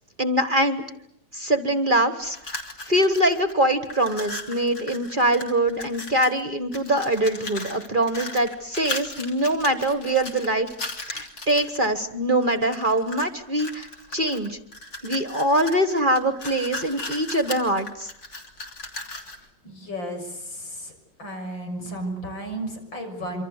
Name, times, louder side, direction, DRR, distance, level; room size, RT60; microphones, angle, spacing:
voice 1, 0.2-0.8 1.3-2.6 2.9-14.6 15.0-18.1, right 1 dB, 30° right, 10 dB, 1.4 m, -23 dB
sound 1, 2.2-3.5 3.8-6.4 6.7-11.9 12.4-13.3 13.6-19.5, left 2 dB, 55° left, 3.6 m, -37 dB
voice 2, 19.6-20.9 21.2-23.4, right 1 dB, 85° left, 4 dB, 7.3 m, -33 dB
27.0 x 25.5 x 8.2 m, 0.75 s
omnidirectional pair, 2.0 m